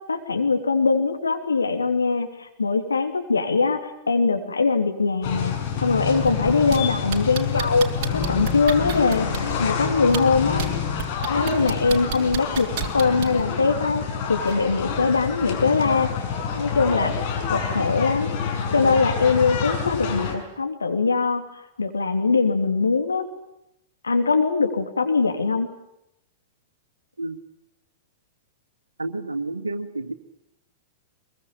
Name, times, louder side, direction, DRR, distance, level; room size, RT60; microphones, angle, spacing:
voice 1, 0.1-3.8 4.1-9.3 9.6-10.7 11.3-12.7 12.9-14.0 14.3-16.1 16.5-17.1 17.5-18.3 18.7-21.4 21.8-23.2 24.0-25.7, left 4 dB, 80° left, 5 dB, 3.1 m, -22 dB
sound 1, 5.2-20.4, left 6 dB, 45° left, 5.7 m, -27 dB
sound 2, 6.3-6.8 7.1-9.5 10.0-10.7 11.0-13.4 14.5-14.6, right 10 dB, 50° right, 2.8 m, -29 dB
voice 2, 29.0-30.1, right 2 dB, 85° right, 8 dB, 1.8 m, -30 dB
23.0 x 22.5 x 8.9 m, 0.84 s
figure-of-eight pair, 100°, 0 cm